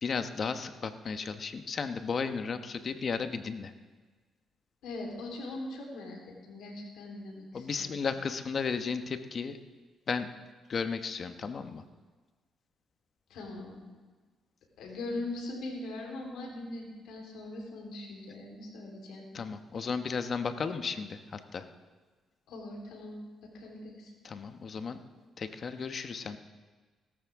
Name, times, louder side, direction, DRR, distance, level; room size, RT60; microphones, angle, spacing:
voice 1, 0.0-3.7 7.5-9.6 10.1-10.3 10.7-11.8 19.3-21.7 24.2-25.0 25.4-26.4, left 5 dB, 45° left, 9 dB, 1.0 m, -34 dB
voice 2, 4.8-6.2 6.5-8.0 13.3-13.8 14.8-19.3 22.5-24.1, left 2 dB, 85° left, -1 dB, 3.7 m, -41 dB
17.0 x 14.0 x 3.6 m, 1.4 s
cardioid pair, 90°, 0 cm